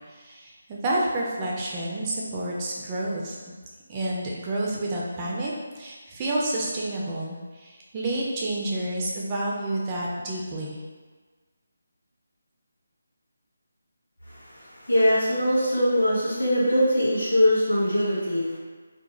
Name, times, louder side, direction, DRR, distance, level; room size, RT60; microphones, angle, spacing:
voice 1, 0.1-3.4 3.9-10.8, right 1 dB, 20° right, -4 dB, 0.4 m, -29 dB
voice 2, 14.3-18.6, equal, 75° left, -7 dB, 0.9 m, -22 dB
2.3 x 2.1 x 2.8 m, 1.4 s
figure-of-eight pair, 150°, 0 cm